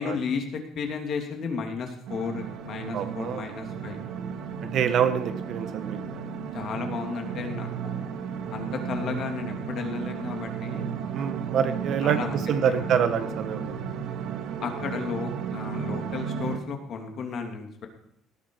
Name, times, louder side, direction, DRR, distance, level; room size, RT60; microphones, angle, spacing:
voice 1, 0.0-4.0 6.5-8.1 8.5-10.8 12.0-12.4 12.6-12.8 14.6-17.9, left 5 dB, 50° left, 3 dB, 2.9 m, -33 dB
sound 1, 2.1-16.6, right 7 dB, 70° right, 1.9 m, -34 dB
voice 2, 2.9-3.5 4.2-4.3 4.7-6.2 11.1-12.2 12.5-13.7, right 8 dB, 55° right, 9 dB, 1.6 m, -26 dB
18.0 x 9.4 x 4.7 m, 0.74 s
cardioid pair, 135°, 0 cm